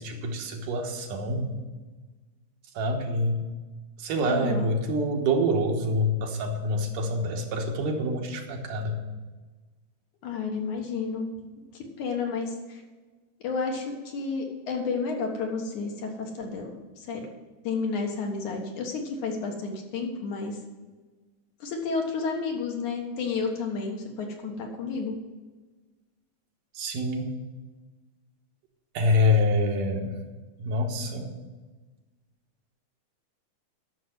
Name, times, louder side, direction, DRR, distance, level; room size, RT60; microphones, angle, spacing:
voice 1, 0.0-1.6 2.7-3.5 4.0-9.0 26.7-27.3 28.9-30.2 30.6-31.3, left 1 dB, 75° right, 2 dB, 2.8 m, -26 dB
voice 2, 4.3-4.7 10.2-11.3 11.7-12.8 13.4-17.2 17.6-20.6 21.6-25.2, left 4 dB, 65° left, 1 dB, 2.8 m, -31 dB
11.0 x 6.6 x 7.9 m, 1.3 s
omnidirectional pair, 3.8 m